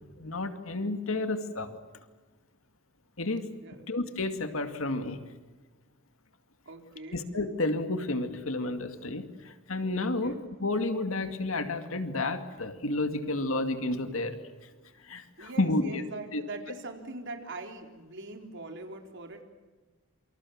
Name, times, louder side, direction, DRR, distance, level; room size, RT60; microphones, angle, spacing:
voice 1, 0.0-1.8 3.2-3.5 3.9-5.2 7.1-14.4 15.0-16.0 16.3-16.4, left 2 dB, 70° left, 8 dB, 2.3 m, -31 dB
voice 2, 3.6-4.0 6.7-7.2 10.2-10.4 15.4-19.4, right 2 dB, 60° right, 4 dB, 4.0 m, -42 dB
28.0 x 26.0 x 7.3 m, 1.3 s
head